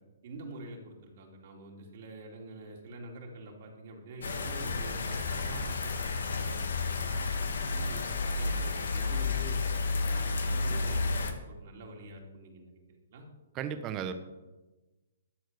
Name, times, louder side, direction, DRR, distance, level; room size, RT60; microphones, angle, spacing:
voice 1, 0.2-9.6 10.0-13.3, right 2 dB, 55° right, 0 dB, 2.7 m, -46 dB
sound 1, 4.2-11.3, left 3 dB, 75° left, 1.4 m, -31 dB
voice 2, 13.5-14.1, right 8 dB, 25° right, 9 dB, 1.0 m, -34 dB
13.0 x 4.5 x 8.1 m, 1.1 s
hypercardioid pair, 145°, 0 cm